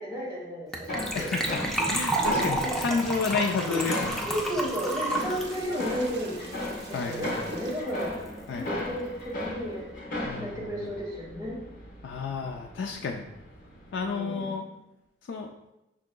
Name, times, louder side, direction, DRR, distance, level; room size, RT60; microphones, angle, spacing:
voice 1, 0.0-1.3 2.6-2.8 4.2-6.4 6.9-8.1 8.5-9.9 10.4-11.6 13.9-14.8, equal, 20° right, -5 dB, 1.2 m, -33 dB
Gurgling / Trickle dribble / Fill (with liquid), 0.7-7.0 7.2-7.3 7.5-7.7 8.0-8.1, right 1 dB, ahead, 0.4 m, -30 dB
sound 1, 0.9-14.1, left 1 dB, 45° left, 1.0 m, -37 dB
voice 2, 1.1-1.6 1.9-4.3 6.9-7.3 8.5-8.6 10.2-10.5 12.0-13.3 13.9-14.6 15.3-15.5, left 4 dB, 70° left, 1 dB, 0.3 m, -30 dB
Wind, 1.8-7.8, right 1 dB, 70° right, 0.7 m, -41 dB
5.9 x 3.7 x 2.2 m, 0.94 s
head